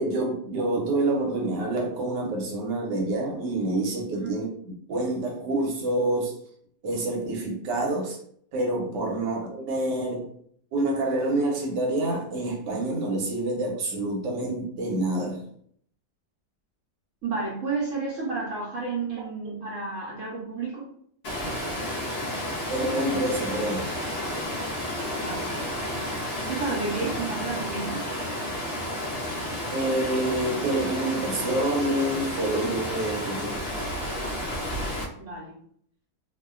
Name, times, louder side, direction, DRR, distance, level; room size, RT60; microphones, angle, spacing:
voice 1, 0.0-4.5 4.9-6.3 6.8-8.2 8.5-10.3 10.7-15.5 22.7-23.9 29.7-33.6, right 2 dB, 85° right, 0 dB, 1.3 m, -27 dB
voice 2, 17.2-20.9 25.1-25.6 26.5-28.0 35.2-35.5, right 4 dB, 60° right, -5 dB, 0.8 m, -31 dB
Water, 21.2-35.0, left 1 dB, 85° left, 0.5 m, -31 dB
2.9 x 2.1 x 2.3 m, 0.64 s
omnidirectional pair, 1.8 m